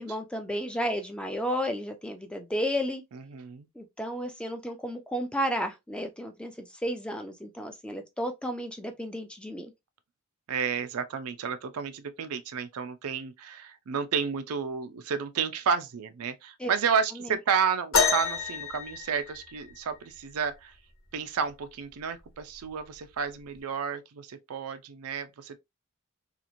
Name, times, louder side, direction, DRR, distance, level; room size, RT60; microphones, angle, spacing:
voice 1, 0.0-3.0 3.8-9.7 16.6-16.7, equal, 5° left, 0.4 m, -32 dB
voice 2, 3.1-3.7 10.5-20.7 21.1-25.6, right 6 dB, 80° right, 0.4 m, -31 dB
sound 1, 17.9-19.8 21.5-21.6 22.4-22.6 23.5-23.6, left 4 dB, 70° left, 1.0 m, -28 dB
2.9 x 2.4 x 2.5 m
head